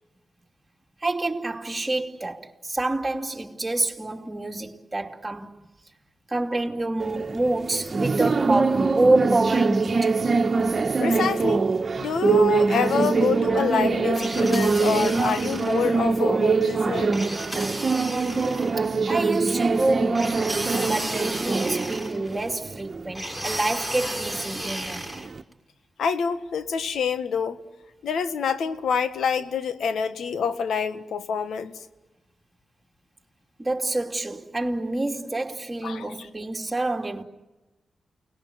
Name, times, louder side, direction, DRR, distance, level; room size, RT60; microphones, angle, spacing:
voice 1, 1.0-5.6 6.3-10.1 18.8-25.1 33.6-37.2, right 2 dB, 25° right, 3.0 m, -27 dB
sound 1, 7.0-25.4, right 4 dB, 50° right, 1.6 m, -24 dB
voice 2, 11.0-11.6 12.0-17.1 26.0-27.6 28.0-31.8 35.8-36.1, left 6 dB, 80° left, 1.6 m, -26 dB
sound 2, 14.1-15.9 17.1-18.8 20.1-22.5 23.1-25.3, right 1 dB, 10° left, 6.5 m, -34 dB
29.5 x 20.0 x 9.4 m
cardioid pair, 50°, 0 cm